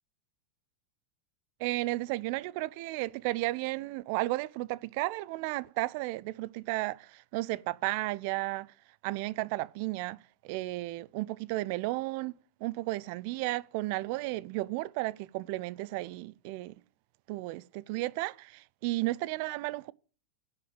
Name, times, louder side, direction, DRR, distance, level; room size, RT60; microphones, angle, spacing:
voice 1, 1.6-8.7 9.0-10.2 10.4-12.3 12.6-16.8 17.3-19.9, right 19 dB, 45° right, 0.4 m, -33 dB
10.0 x 5.6 x 7.3 m
figure-of-eight pair, 90°, 0 cm